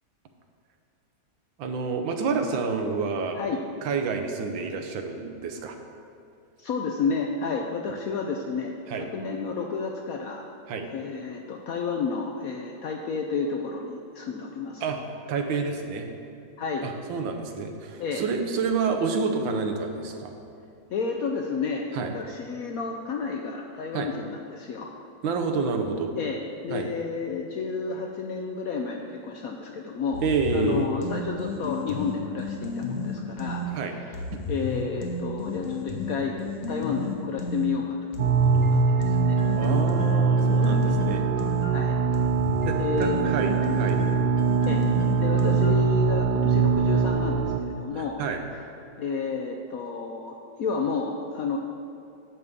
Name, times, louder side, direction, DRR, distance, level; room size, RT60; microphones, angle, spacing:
voice 1, 1.6-3.4 3.8-5.8 8.9-9.0 10.7-10.9 14.8-15.0 15.3-16.1 16.8-20.3 21.9-22.1 23.9-24.1 25.2-26.1 26.7-26.9 30.2-30.9 33.7-33.9 34.3-34.4 39.6-41.3 42.6-44.0 47.9-48.4, right 4 dB, 90° right, 5 dB, 1.5 m, -28 dB
voice 2, 6.6-8.7 9.1-10.4 10.9-14.8 16.6-16.9 18.0-18.2 20.9-24.9 26.2-26.4 26.6-30.2 30.5-33.6 34.0-34.2 34.5-36.4 36.7-38.1 38.4-39.4 40.9-41.0 41.7-42.0 42.8-43.3 44.7-44.8 45.2-48.2 49.0-51.6, left 5 dB, 70° left, 2 dB, 0.8 m, -31 dB
sound 1, 30.1-33.7 34.1-37.7 38.1-45.9, left 3 dB, 45° left, 1.0 m, -32 dB
sound 2, 38.2-47.6, right 5 dB, 75° right, 1.0 m, -23 dB
10.5 x 3.6 x 6.7 m, 2.8 s
omnidirectional pair, 2.0 m